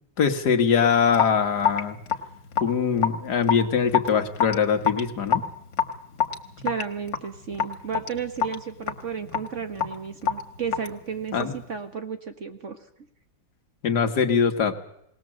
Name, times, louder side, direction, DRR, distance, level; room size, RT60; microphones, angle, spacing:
voice 1, 0.2-2.0 2.6-5.4 6.6-6.7 11.3-11.5 13.8-14.7, left 6 dB, 60° left, 7 dB, 2.1 m, -22 dB
Raindrop / Drip, 1.1-11.6, left 8 dB, 85° left, 2.2 m, -28 dB
voice 2, 6.6-12.8, right 6 dB, 45° right, 7 dB, 1.5 m, -33 dB
19.5 x 19.5 x 7.6 m, 0.75 s
omnidirectional pair, 2.0 m